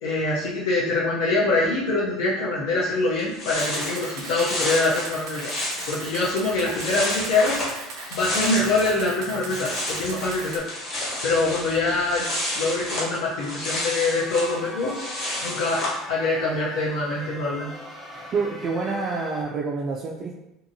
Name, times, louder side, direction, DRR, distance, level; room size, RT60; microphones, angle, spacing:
voice 1, 0.0-5.5 5.9-7.6 8.1-10.6 11.2-12.3 12.6-14.9 15.4-15.8 16.1-17.7, left 2 dB, 85° left, -6 dB, 0.5 m, -24 dB
sound 1, 2.9-3.0 3.2-9.0 9.3-16.0, left 1 dB, 45° left, 1.2 m, -31 dB
Camera, 3.6-10.6, right 3 dB, 80° right, 0.5 m, -38 dB
sound 2, 13.9-19.4, left 1 dB, 20° left, 0.6 m, -40 dB
voice 2, 18.3-20.4, right 4 dB, 35° right, -2 dB, 0.3 m, -27 dB
2.7 x 2.5 x 2.6 m, 0.88 s
cardioid pair, 135°, 0 cm